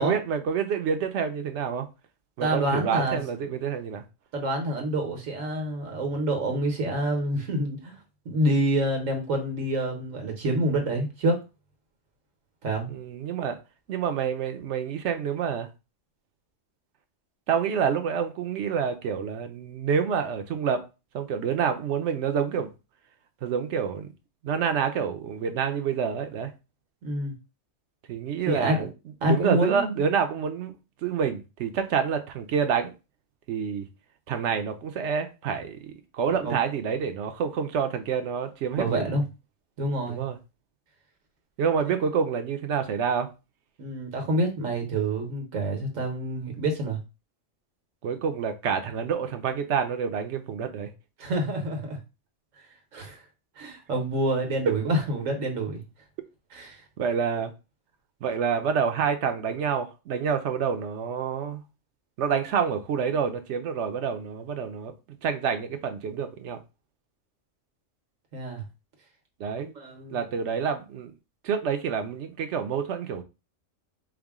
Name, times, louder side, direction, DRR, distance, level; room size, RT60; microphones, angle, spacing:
voice 1, 0.0-1.8 2.4-4.0 12.9-13.6 13.9-15.7 17.5-20.8 21.1-22.7 23.4-24.1 24.4-26.5 28.1-28.8 29.3-30.7 31.0-32.9 33.5-33.8 34.3-39.1 40.1-40.4 41.6-43.3 48.0-50.9 57.0-57.5 58.2-61.6 62.2-64.9 65.2-66.6 69.4-69.7 70.1-71.1 71.4-73.2, right 7 dB, 70° right, 0.9 m, -27 dB
voice 2, 2.4-3.2 4.3-8.0 8.2-11.4 12.6-12.9 27.0-27.3 28.5-28.9 29.2-30.0 36.3-36.6 38.7-39.2 39.8-40.2 43.8-47.0 51.2-52.0 52.6-52.7 52.9-53.2 53.6-55.8 56.5-56.8 68.3-68.6 69.6-70.2, right 1 dB, 85° right, 1.5 m, -27 dB
4.7 x 2.1 x 3.5 m
omnidirectional pair, 1.3 m